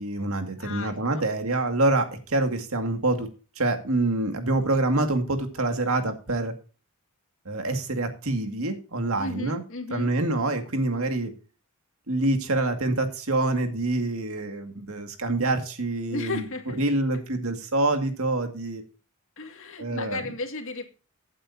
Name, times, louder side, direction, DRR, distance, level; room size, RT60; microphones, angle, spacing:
voice 1, 0.0-3.3 3.6-6.5 7.5-9.6 9.9-11.3 12.1-16.4 16.8-18.8 19.8-20.2, right 2 dB, 70° right, 2.2 m, -26 dB
voice 2, 0.6-1.3 9.2-10.1 16.1-16.8 19.4-20.8, left 2 dB, 65° left, 2.2 m, -34 dB
16.0 x 8.8 x 2.8 m
head